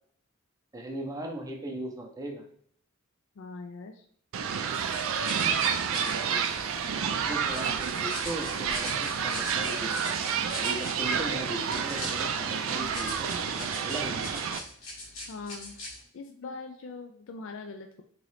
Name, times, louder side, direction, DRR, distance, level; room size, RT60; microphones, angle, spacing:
voice 1, 0.7-2.5 5.9-10.0 10.6-14.4, right 1 dB, 15° right, 2 dB, 0.6 m, -39 dB
voice 2, 3.4-4.0 15.3-15.8 16.1-18.0, left 3 dB, 65° left, 4 dB, 0.3 m, -41 dB
sound 1, 4.3-14.6, right 7 dB, 75° right, 0.4 m, -29 dB
sound 2, 4.7-16.0, left 2 dB, 85° left, 1.5 m, -43 dB
3.7 x 3.0 x 3.1 m, 0.62 s
head